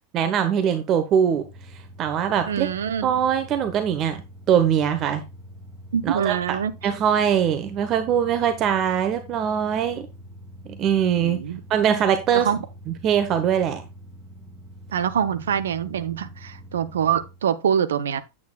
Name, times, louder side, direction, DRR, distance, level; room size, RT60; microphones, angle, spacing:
voice 1, 0.1-1.4 2.0-2.7 3.0-4.2 4.5-5.2 6.0-10.1 10.8-11.4 11.7-12.5 12.9-13.8, right 8 dB, 35° right, 1.0 m, -22 dB
sound 1, 1.3-17.4, equal, 10° right, 4.5 m, -44 dB
voice 2, 2.5-3.2 5.9-6.7 11.2-11.6 12.3-12.6 14.9-18.2, right 8 dB, 65° right, 0.7 m, -25 dB
8.6 x 8.3 x 2.3 m
figure-of-eight pair, 90°, 0 cm